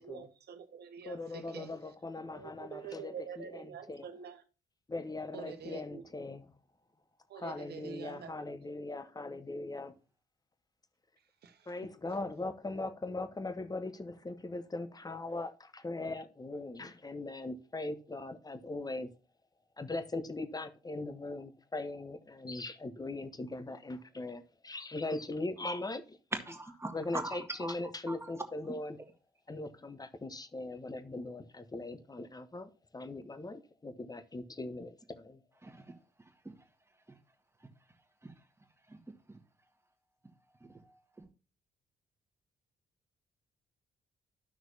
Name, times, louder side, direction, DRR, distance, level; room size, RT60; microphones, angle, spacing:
voice 1, 0.0-1.7 2.3-4.4 5.3-6.0 7.3-8.5 11.4-11.6, right 7 dB, 55° right, 1.2 m, -46 dB
voice 2, 1.1-4.1 4.9-6.5 7.3-9.9 11.7-19.1 19.8-26.2 26.9-29.0 29.5-35.4, left 2 dB, 20° left, 0.9 m, -40 dB
voice 3, 26.3-28.4 35.6-36.6 37.1-37.2 37.6-37.7 38.2-38.4 38.9-39.0 39.3-39.4 40.6-41.3, right 2 dB, 15° right, 1.7 m, -43 dB
13.0 x 6.1 x 2.7 m
figure-of-eight pair, 40°, 20 cm